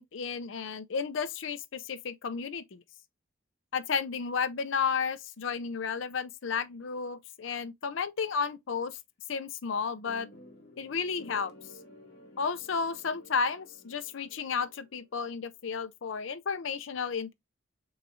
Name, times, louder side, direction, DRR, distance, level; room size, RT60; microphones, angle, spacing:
voice 1, 0.0-2.8 3.7-9.0 9.3-10.3 10.8-11.5 12.4-17.3, left 5 dB, 80° left, 0.5 m, -32 dB
sound 1, 10.1-15.2, equal, 55° left, 1.1 m, -53 dB
4.7 x 4.0 x 2.5 m
head